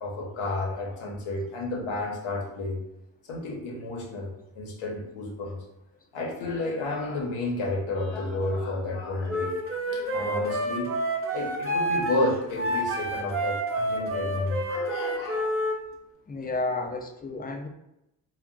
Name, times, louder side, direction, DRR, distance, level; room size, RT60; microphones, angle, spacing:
voice 1, 0.0-2.8 3.3-4.3 4.6-5.5 6.1-9.5 9.8-15.4, left 2 dB, 85° left, -1 dB, 0.8 m, -31 dB
Wind instrument woodwind instrument, 9.3-15.8, right 1 dB, 30° right, 0.8 m, -29 dB
voice 2, 16.3-17.7, left 3 dB, 20° left, 4 dB, 0.4 m, -31 dB
2.3 x 2.2 x 3.7 m, 0.86 s
cardioid pair, 50°, 48 cm